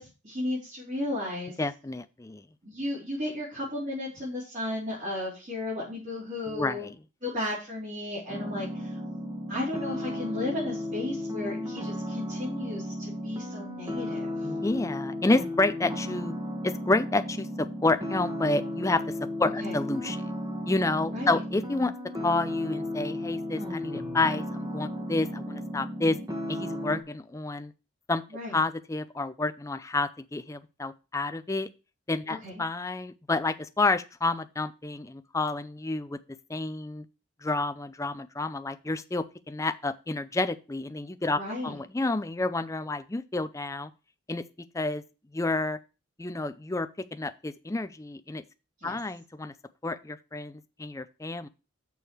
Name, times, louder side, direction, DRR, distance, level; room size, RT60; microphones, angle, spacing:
voice 1, 0.0-1.6 2.6-6.9 7.2-9.0 9.5-14.5 19.6-19.8 21.1-21.4 28.3-28.6 32.4-32.6 41.3-41.8 48.8-49.0, left 1 dB, 40° right, -7 dB, 3.5 m, -34 dB
voice 2, 1.6-2.4 6.5-6.9 14.4-16.3 16.6-20.3 20.7-21.9 22.2-26.2 26.5-27.7 28.1-28.2 28.5-31.7 32.1-36.2 36.5-37.0 37.4-43.9 44.3-44.4 44.7-45.0 45.3-45.8 46.2-48.4 48.8-49.5 49.8-51.5, left 2 dB, 15° left, 11 dB, 0.5 m, -29 dB
sound 1, 8.3-27.0, left 1 dB, 15° right, 1.2 m, -34 dB
6.9 x 6.6 x 4.5 m, 0.31 s
head